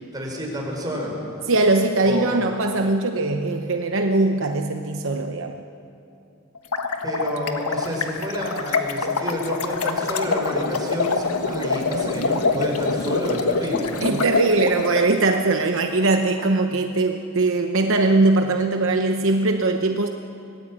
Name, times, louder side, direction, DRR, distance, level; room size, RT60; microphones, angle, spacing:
voice 1, 0.1-1.2 2.0-2.4 7.0-13.9, equal, 20° right, -1 dB, 5.1 m, -29 dB
voice 2, 1.5-5.6 14.0-20.1, right 2 dB, 60° right, 5 dB, 0.9 m, -21 dB
sound 1, 6.5-15.0, left 4 dB, 80° left, 1.5 m, -25 dB
24.5 x 18.5 x 8.8 m, 2.7 s
head